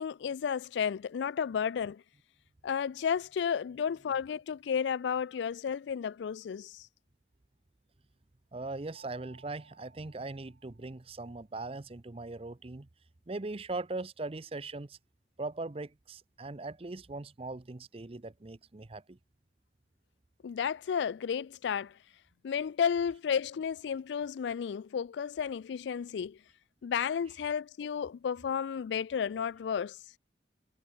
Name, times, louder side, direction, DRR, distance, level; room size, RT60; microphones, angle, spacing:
voice 1, 0.0-2.0 2.6-6.9 20.4-22.0 22.4-26.4 26.8-30.0, left 7 dB, 80° left, 0.3 m, -32 dB
voice 2, 8.5-12.9 13.3-15.0 15.4-19.2, right 2 dB, 30° right, 0.7 m, -40 dB
Mallet percussion, 8.9-11.5, right 4 dB, 70° right, 1.0 m, -61 dB
head